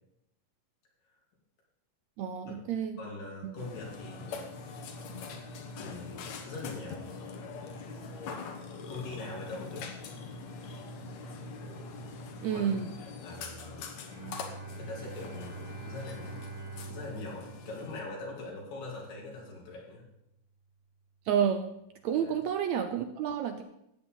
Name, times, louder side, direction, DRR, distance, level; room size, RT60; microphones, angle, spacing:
voice 1, 2.2-3.0 3.4-3.5 12.4-12.9 21.3-21.7 22.0-23.6, right 8 dB, 75° right, 7 dB, 1.7 m, -30 dB
voice 2, 3.0-4.6 5.8-7.0 8.9-9.9 12.5-12.7 13.2-13.8 14.8-16.3 16.8-20.0 22.2-22.3, left 3 dB, 90° left, -3 dB, 4.7 m, -42 dB
Burping eructation, 3.6-18.0, left 4 dB, 65° left, 2.2 m, -43 dB
Bowed string instrument, 14.1-19.8, right 4 dB, 50° right, 3.5 m, -46 dB
14.0 x 9.3 x 3.9 m, 0.81 s
omnidirectional pair, 3.7 m